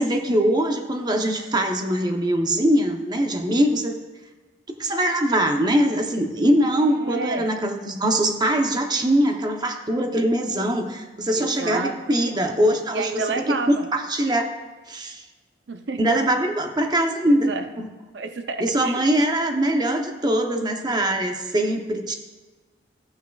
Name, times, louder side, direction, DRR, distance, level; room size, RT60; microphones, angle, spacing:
voice 1, 0.0-4.0 4.8-13.6 13.9-14.5 14.9-15.2 16.0-17.9 18.6-22.2, right 1 dB, 25° right, 4 dB, 0.8 m, -22 dB
voice 2, 6.9-7.5 11.4-12.2 12.9-13.9 15.7-16.0 17.5-17.6 18.1-19.1, right 4 dB, 75° right, 7 dB, 0.6 m, -30 dB
14.0 x 9.2 x 2.4 m, 1.3 s
head